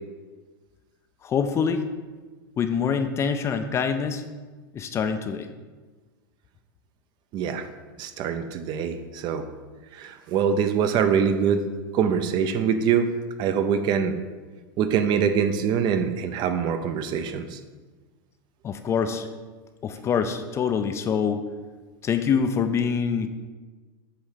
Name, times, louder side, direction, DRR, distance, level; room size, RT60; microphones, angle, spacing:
voice 1, 1.2-1.8 2.6-4.2 4.7-5.5 18.6-19.3 19.8-21.5 22.0-23.3, left 6 dB, 25° left, 7 dB, 0.4 m, -25 dB
voice 2, 7.3-7.6 8.0-9.4 9.9-11.6 11.9-13.1 13.4-14.2 14.8-17.6 19.1-19.2, right 7 dB, 40° right, 9 dB, 0.6 m, -24 dB
8.0 x 3.2 x 5.6 m, 1.3 s
supercardioid pair, 130°, 12 cm